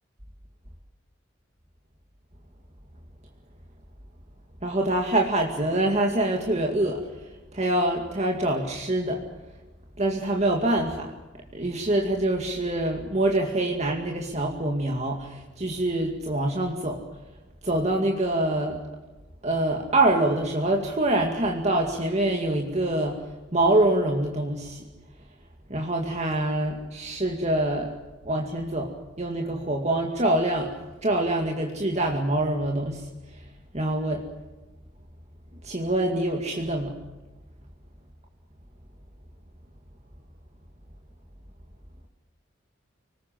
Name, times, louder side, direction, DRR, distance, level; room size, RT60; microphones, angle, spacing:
voice 1, 4.6-7.1 7.5-9.2 10.0-11.1 11.5-17.0 17.6-18.8 19.4-23.2 23.5-24.8 25.7-27.9 28.3-33.0 33.7-34.2 35.6-37.0, right 1 dB, 35° right, 2 dB, 2.2 m, -25 dB
25.5 x 20.0 x 7.6 m, 1.1 s
head